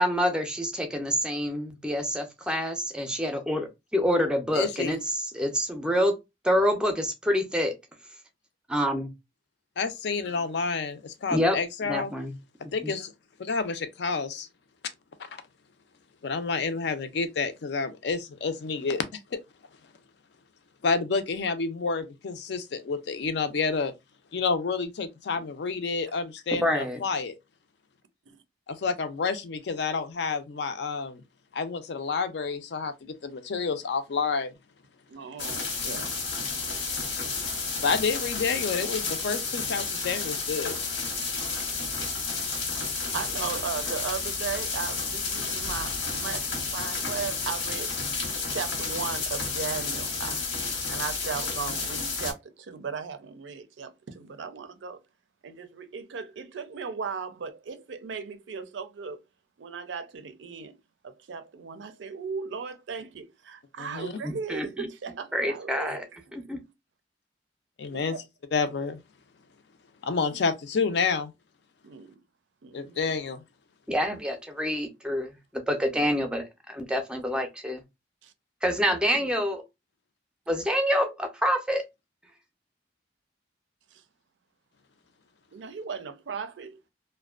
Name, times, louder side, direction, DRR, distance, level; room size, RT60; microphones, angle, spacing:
voice 1, 0.0-5.0 5.3-6.2 6.4-7.7 8.7-9.1 11.3-11.6 11.9-12.3 12.8-12.9 26.5-27.0 64.2-64.9 65.3-66.0 66.3-66.6 73.9-77.8 78.6-79.6 80.5-81.8, equal, 5° right, 0.4 m, -27 dB
voice 2, 4.5-5.0 9.8-12.1 12.7-13.1 13.4-14.5 16.2-19.0 19.3-19.4 20.8-23.9 24.3-27.4 28.7-31.2 31.5-34.5 37.8-40.8 63.8-64.2 67.8-68.2 68.5-69.0 70.0-71.3 72.7-73.4, left 4 dB, 65° left, 0.4 m, -29 dB
voice 3, 35.1-36.1 41.2-41.7 43.1-47.9 48.5-50.4 50.9-55.0 55.4-59.2 59.6-60.7 61.0-66.1 67.9-68.2 70.1-70.4 71.8-72.2 72.6-73.0 78.2-78.3 83.9-84.0 85.5-86.8, right 5 dB, 80° right, 0.4 m, -37 dB
sound 1, 35.4-52.3, left 4 dB, 90° left, 1.0 m, -31 dB
2.5 x 2.1 x 2.3 m
head